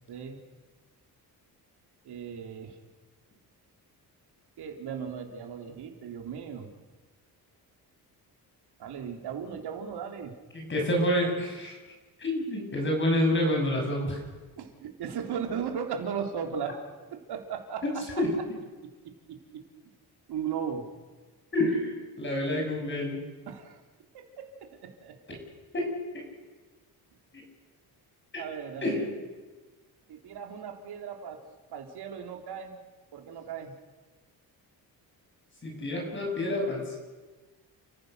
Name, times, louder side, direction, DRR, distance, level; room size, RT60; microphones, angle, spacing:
voice 1, 0.1-0.4 2.1-2.7 4.6-6.7 8.8-10.3 14.6-16.8 17.1-18.2 18.8-19.6 20.3-20.9 23.5-23.8 24.1-25.4 28.4-29.1 30.1-31.4 31.7-32.8 33.1-33.7, right 7 dB, 80° right, 4 dB, 3.4 m, -37 dB
voice 2, 10.5-11.8 12.2-14.2 18.2-18.3 21.5-23.2 25.3-25.4 25.7-25.9 26.1-26.3 27.3-27.4 28.3-28.4 28.8-29.2 35.6-37.0, left 1 dB, 30° left, 1 dB, 6.6 m, -28 dB
30.0 x 15.0 x 6.7 m, 1.3 s
cardioid pair, 145°, 38 cm